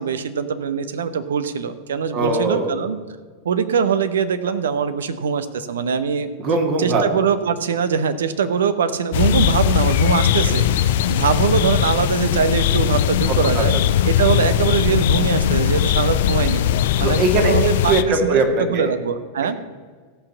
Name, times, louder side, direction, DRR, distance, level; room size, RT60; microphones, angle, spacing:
voice 1, 0.0-3.0 3.4-6.3 6.8-13.8 14.1-16.6 17.0-19.6, right 6 dB, 65° right, 12 dB, 0.7 m, -22 dB
voice 2, 2.1-2.8 6.4-7.1 13.3-13.7 17.0-17.6 17.9-18.9, right 3 dB, 40° right, 3 dB, 2.0 m, -20 dB
sound 1, 9.1-18.0, left 10 dB, 55° left, 0.5 m, -19 dB
14.5 x 5.7 x 7.3 m, 1.5 s
figure-of-eight pair, 90°, 0 cm